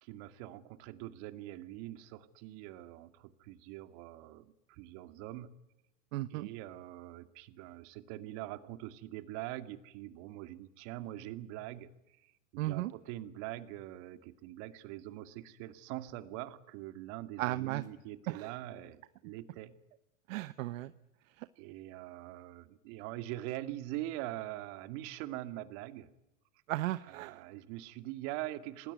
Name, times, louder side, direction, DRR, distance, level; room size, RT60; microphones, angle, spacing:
voice 1, 0.0-5.5 6.3-19.7 21.6-26.1 27.1-28.9, right 15 dB, 60° right, 10 dB, 2.4 m, -43 dB
voice 2, 6.1-6.5 12.6-12.9 17.4-17.8 18.3-18.5 20.3-20.9 21.4-21.5 26.7-27.4, right 17 dB, 75° right, 13 dB, 1.1 m, -35 dB
27.5 x 19.5 x 9.4 m, 0.92 s
supercardioid pair, 125°, 40 cm